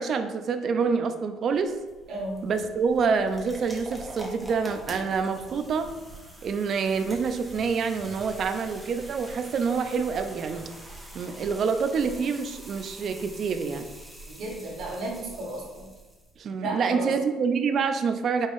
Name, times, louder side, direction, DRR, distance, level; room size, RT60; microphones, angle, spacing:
voice 1, 0.0-1.7 2.4-5.9 6.4-10.7 11.1-13.9 16.4-18.5, right 5 dB, 45° right, 8 dB, 0.4 m, -27 dB
sound 1, 1.5-16.4, right 1 dB, 10° right, 0.9 m, -45 dB
voice 2, 2.1-2.4 14.3-15.9 16.6-17.1, right 2 dB, 70° right, -3 dB, 1.4 m, -33 dB
5.3 x 3.5 x 2.5 m, 1.2 s
cardioid pair, 125°, 0 cm